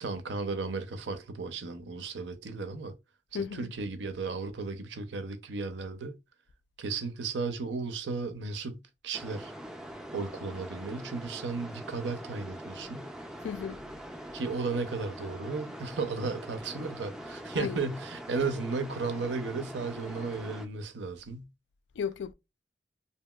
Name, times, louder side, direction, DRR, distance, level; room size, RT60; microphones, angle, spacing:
voice 1, 0.0-2.9 3.3-6.2 6.8-9.5 10.1-13.1 14.3-21.5, right 4 dB, 85° right, 0.5 m, -35 dB
voice 2, 3.3-3.7 13.4-13.8 17.6-17.8 21.9-22.3, left 7 dB, 90° left, 0.3 m, -34 dB
sound 1, 9.1-20.7, equal, 5° right, 0.3 m, -43 dB
2.8 x 2.6 x 2.2 m
head